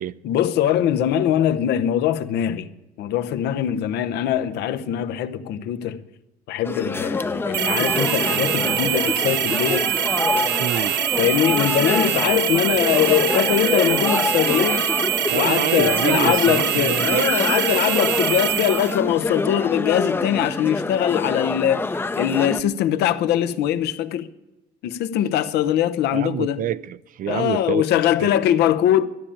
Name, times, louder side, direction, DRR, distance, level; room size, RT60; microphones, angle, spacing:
voice 1, 0.2-2.7 3.0-6.0 6.5-9.9 11.2-14.9 15.3-21.9 22.2-24.3 24.8-26.6 27.3-29.1, left 11 dB, 80° left, 0.8 m, -22 dB
sound 1, 6.6-22.6, left 3 dB, 15° left, 0.6 m, -26 dB
sound 2, 7.5-19.0, right 10 dB, 80° right, 1.2 m, -24 dB
voice 2, 10.6-10.9 15.3-17.3 26.1-27.8 28.2-28.3, right 11 dB, 55° right, 0.5 m, -27 dB
12.5 x 10.0 x 8.6 m
cardioid pair, 110°, 17 cm